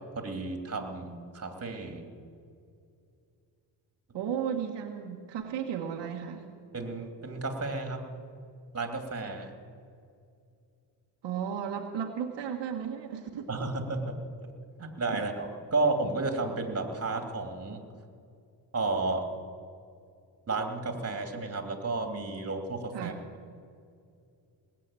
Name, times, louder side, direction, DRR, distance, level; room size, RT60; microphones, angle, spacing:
voice 1, 0.2-2.0 6.7-8.0 8.7-9.5 13.5-14.1 14.8-17.8 18.7-19.3 20.5-23.1, right 3 dB, 35° right, 4 dB, 2.7 m, -32 dB
voice 2, 4.1-6.5 11.2-13.5 15.2-15.3 22.9-23.2, right 8 dB, 80° right, 2 dB, 1.4 m, -34 dB
19.5 x 7.7 x 8.9 m, 2.4 s
cardioid pair, 75°, 43 cm